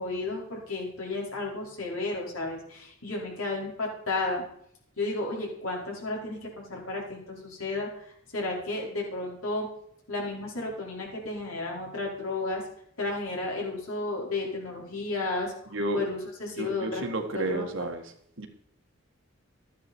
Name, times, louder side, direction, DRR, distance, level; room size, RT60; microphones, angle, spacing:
voice 1, 0.0-4.4 5.0-9.7 10.1-12.6 13.0-17.1 17.3-17.7, left 2 dB, 80° left, -2 dB, 4.9 m, -33 dB
voice 2, 15.7-16.0 16.6-18.0 18.4-18.5, right 2 dB, 65° right, 5 dB, 1.7 m, -31 dB
13.5 x 10.0 x 4.5 m, 0.69 s
head